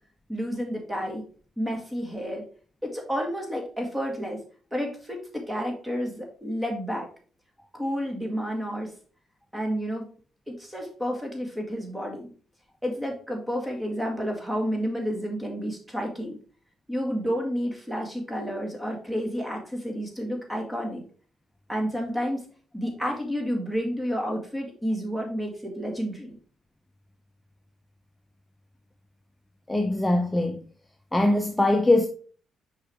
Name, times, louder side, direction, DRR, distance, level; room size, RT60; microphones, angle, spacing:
voice 1, 0.3-1.2 1.6-2.4 2.8-4.4 4.7-7.1 7.7-8.9 9.5-10.1 10.5-12.3 12.8-16.4 16.9-21.0 21.7-22.5 22.7-26.4, equal, 10° right, 2.1 m, -30 dB
voice 2, 29.7-30.6 31.1-32.1, left 2 dB, 10° left, 0.6 m, -22 dB
6.3 x 4.8 x 3.5 m
cardioid pair, 90°, 0 cm